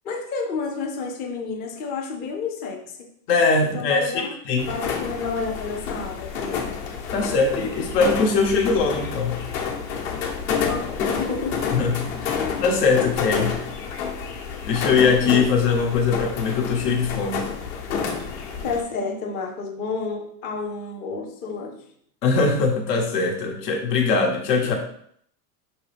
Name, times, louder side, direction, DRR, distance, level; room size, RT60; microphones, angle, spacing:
voice 1, 0.0-3.1 3.6-4.3 4.6-6.6 7.1-7.3 10.5-11.6 12.3-12.6 18.6-21.8 24.6-24.7, left 4 dB, 20° left, 1 dB, 0.4 m, -30 dB
voice 2, 3.3-4.7 7.1-9.4 11.7-13.6 14.7-17.5 22.2-24.7, left 4 dB, 85° left, 2 dB, 1.3 m, -21 dB
sound 1, 4.6-18.8, left 6 dB, 60° left, 1.1 m, -29 dB
5.2 x 3.1 x 3.3 m, 0.66 s
supercardioid pair, 145°, 48 cm